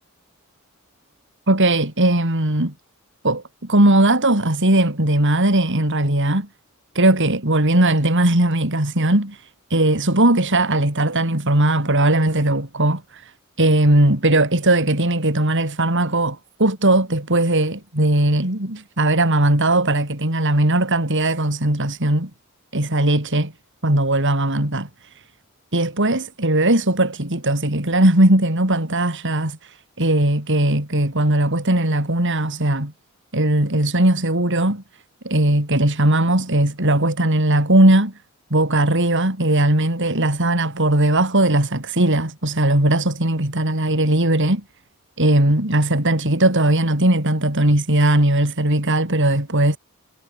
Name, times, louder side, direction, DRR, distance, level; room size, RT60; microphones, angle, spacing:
voice 1, 1.5-2.7 3.2-6.5 6.9-13.3 13.6-22.3 22.7-23.5 23.8-24.9 25.7-32.9 33.3-34.8 35.2-38.1 38.5-44.6 45.2-49.8, right 1 dB, 55° right, 4.9 m, -18 dB
head